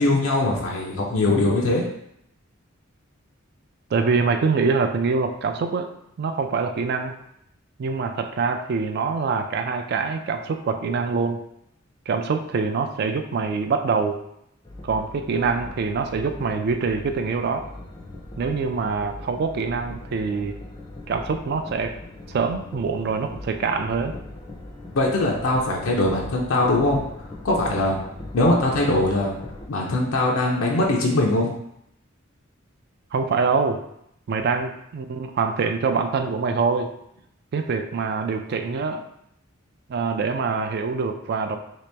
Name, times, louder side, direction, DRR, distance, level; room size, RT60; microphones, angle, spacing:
voice 1, 0.0-1.9 25.0-27.0 27.4-28.0 28.3-29.3 29.7-31.6, left 2 dB, 75° left, -2 dB, 0.5 m, -21 dB
voice 2, 3.9-7.1 7.8-11.5 12.1-14.2 14.8-17.6 18.4-20.6 21.1-22.0 22.3-24.1 33.1-33.8 34.3-36.9 37.5-39.1 39.9-41.6, right 4 dB, 50° right, 7 dB, 0.3 m, -25 dB
sound 1, 14.6-29.7, left 2 dB, 20° left, 0.4 m, -39 dB
2.9 x 2.9 x 3.3 m, 0.76 s
head